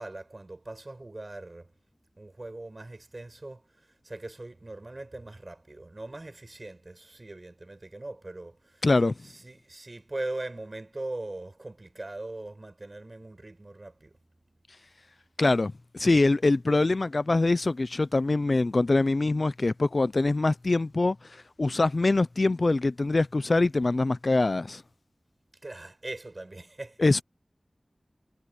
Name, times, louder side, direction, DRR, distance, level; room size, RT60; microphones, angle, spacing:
voice 1, 0.0-1.7 2.2-8.9 9.2-14.2 25.6-27.2, right 2 dB, 45° right, 5.1 m, -40 dB
voice 2, 8.8-9.1 15.4-21.2 21.6-24.8 27.0-27.2, left 2 dB, 60° left, 0.6 m, -24 dB
wide cardioid pair, 60°, 0 cm